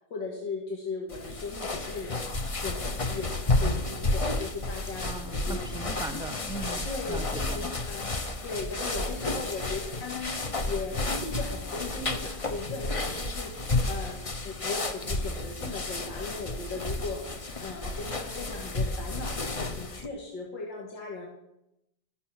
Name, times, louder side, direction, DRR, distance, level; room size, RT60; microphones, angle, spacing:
voice 1, 0.1-5.8 6.8-7.2 7.5-8.1 8.4-10.4 10.6-17.3 17.6-21.3, left 3 dB, 80° left, -1 dB, 3.0 m, -38 dB
sound 1, 1.1-20.1, left 2 dB, 35° left, 0.5 m, -31 dB
voice 2, 5.0-7.6, right 1 dB, 5° right, 9 dB, 0.9 m, -38 dB
13.5 x 11.5 x 6.0 m, 0.81 s
omnidirectional pair, 1.9 m